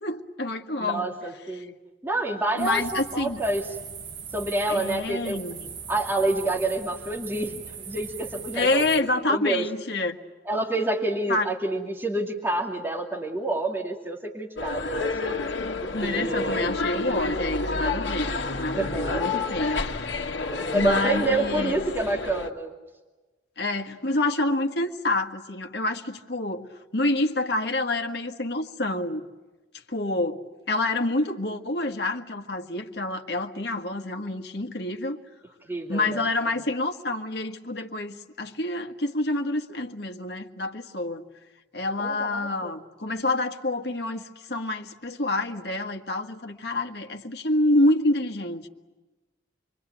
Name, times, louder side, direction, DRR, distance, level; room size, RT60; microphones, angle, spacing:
voice 1, 0.0-1.1 1.6-1.7 2.6-3.4 4.7-5.6 8.5-10.2 11.3-11.5 15.9-19.9 20.7-21.8 23.6-26.7 26.9-29.2 29.9-35.2 35.9-41.2 41.7-48.7, left 2 dB, 60° left, 5 dB, 1.6 m, -27 dB
voice 2, 0.8-1.7 2.0-3.8 4.3-5.4 5.9-9.6 10.4-15.5 16.0-16.7 17.1-17.2 18.3-18.4 18.7-19.2 20.5-22.7 35.7-36.3 42.0-42.7, right 2 dB, 10° right, -2 dB, 2.6 m, -28 dB
sound 1, 2.6-9.0, right 6 dB, 75° right, 1.8 m, -40 dB
sound 2, 14.6-22.5, left 3 dB, 80° left, 1.6 m, -29 dB
27.5 x 23.0 x 9.2 m, 1.2 s
head